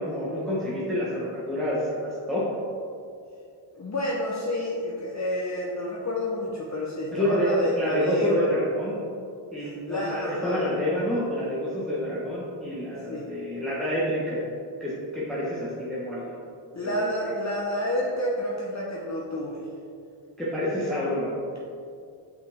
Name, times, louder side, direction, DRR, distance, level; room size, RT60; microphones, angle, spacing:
voice 1, 0.0-2.5 7.1-9.0 9.5-14.4 14.8-16.4 16.8-17.3 20.4-21.3, equal, ahead, -8 dB, 1.3 m, -28 dB
voice 2, 3.7-8.6 9.6-10.7 13.1-13.3 16.7-19.7, left 1 dB, 35° left, -4 dB, 0.9 m, -29 dB
5.9 x 5.6 x 3.6 m, 2.4 s
cardioid pair, 65°, 49 cm